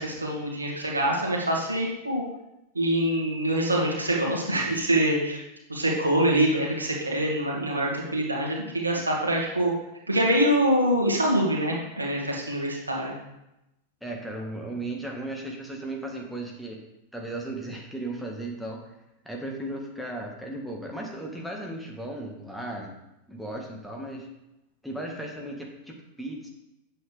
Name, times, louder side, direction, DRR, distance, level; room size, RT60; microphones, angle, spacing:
voice 1, 0.0-2.2 2.7-5.4 5.7-9.7 10.1-13.1, right 1 dB, 80° right, -2 dB, 2.2 m, -25 dB
voice 2, 14.0-16.8 17.1-18.8 19.2-22.9 23.3-24.3 24.8-26.5, right 1 dB, ahead, -1 dB, 1.7 m, -36 dB
9.0 x 7.7 x 3.5 m, 0.89 s
figure-of-eight pair, 90°, 0 cm